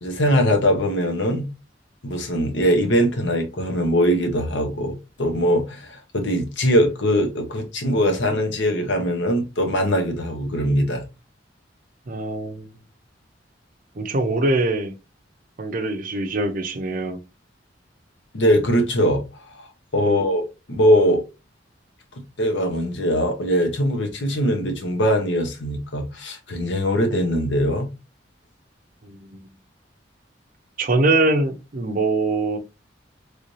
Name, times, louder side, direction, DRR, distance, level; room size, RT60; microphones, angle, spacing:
voice 1, 0.0-1.5 2.0-11.1 18.3-19.2 19.6-19.7 19.9-20.4 20.7-21.2 22.4-27.9, equal, 80° left, 0.9 m, -21 dB
voice 2, 12.1-12.7 14.0-14.9 15.6-17.2 20.0-20.3 29.0-29.4 30.8-32.6, right 2 dB, 50° right, 0.6 m, -23 dB
3.3 x 2.7 x 3.0 m
head